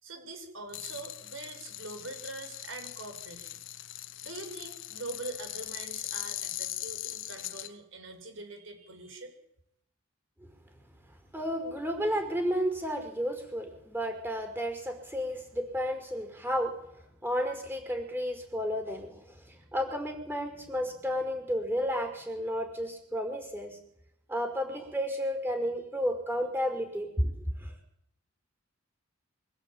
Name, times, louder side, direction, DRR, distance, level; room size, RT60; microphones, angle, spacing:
voice 1, 0.0-3.6 4.2-9.3, right 2 dB, 70° right, 6 dB, 6.1 m, -43 dB
sound 1, 0.7-7.7, left 13 dB, 70° left, 1.5 m, -40 dB
voice 2, 11.3-16.8 17.2-23.8 24.3-27.7, equal, 10° right, 5 dB, 5.4 m, -32 dB
25.5 x 17.0 x 9.0 m, 0.77 s
head